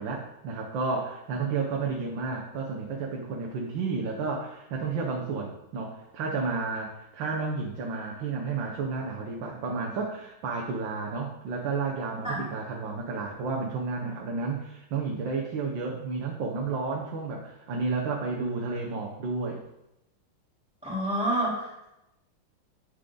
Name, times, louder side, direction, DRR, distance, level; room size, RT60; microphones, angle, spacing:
voice 1, 0.0-19.6, right 4 dB, 65° right, -1 dB, 1.6 m, -31 dB
voice 2, 20.8-21.8, right 1 dB, 5° right, -8 dB, 3.3 m, -28 dB
10.0 x 5.3 x 3.9 m, 0.89 s
omnidirectional pair, 2.3 m